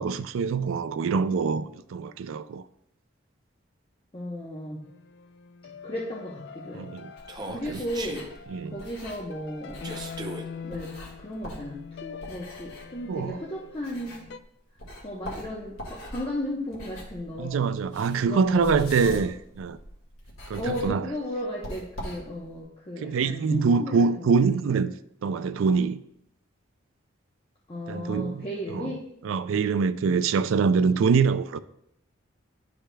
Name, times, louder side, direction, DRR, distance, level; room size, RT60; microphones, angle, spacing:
voice 1, 0.0-2.6 6.7-7.1 7.4-7.8 8.5-8.7 13.1-13.4 17.4-19.8 20.5-21.1 23.0-24.9 25.2-26.0 27.9-28.4 28.7-28.9 29.2-31.6, right 5 dB, 80° right, 0.4 m, -24 dB
voice 2, 4.1-4.8 5.8-6.9 7.5-8.2 8.7-9.8 10.6-10.9 11.2-14.2 15.0-17.6 18.3-19.2 20.6-24.6 27.7-29.0, left 1 dB, 25° left, 0.8 m, -35 dB
sound 1, 4.8-14.4, left 6 dB, 55° left, 0.3 m, -44 dB
sound 2, 7.2-14.5 14.8-22.6, equal, 90° left, 2.1 m, -43 dB
Human voice, 7.3-8.3 9.8-10.5, right 2 dB, 20° right, 0.6 m, -37 dB
11.5 x 5.0 x 2.2 m
head